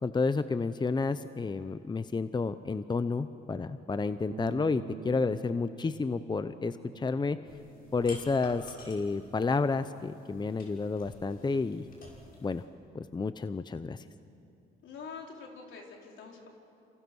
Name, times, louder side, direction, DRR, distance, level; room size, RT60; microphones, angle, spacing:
voice 1, 0.0-7.4 7.9-11.9 12.4-12.6 12.9-14.0, left 4 dB, 20° left, 12 dB, 0.7 m, -31 dB
Bass guitar, 4.3-10.5, right 8 dB, 85° right, 2.6 m, -49 dB
sound 1, 7.4-12.6, left 2 dB, 50° left, 6.1 m, -52 dB
voice 2, 14.8-16.5, left 5 dB, 75° left, 0 dB, 4.6 m, -45 dB
28.5 x 27.5 x 6.3 m, 2.6 s
cardioid pair, 90°, 20 cm